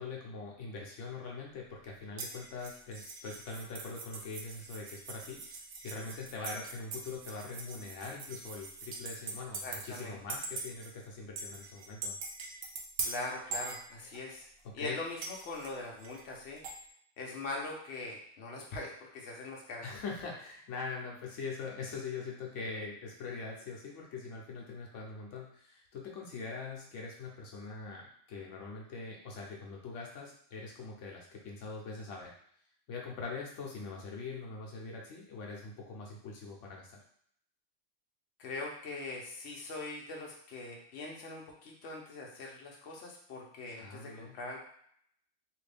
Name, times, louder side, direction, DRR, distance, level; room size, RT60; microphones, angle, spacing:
voice 1, 0.0-12.2 14.6-15.0 19.8-32.3 32.9-37.0 43.8-44.4, left 4 dB, 85° left, -2 dB, 1.1 m, -43 dB
sound 1, 2.2-10.0 10.3-10.9 11.4-14.4 15.2-16.8, right 3 dB, 65° right, 0.7 m, -42 dB
voice 2, 9.6-10.2 13.0-14.5 14.7-16.6 17.2-19.9 38.4-44.6, left 2 dB, 65° left, -2 dB, 1.0 m, -42 dB
3.1 x 2.5 x 3.3 m, 0.65 s
omnidirectional pair, 1.2 m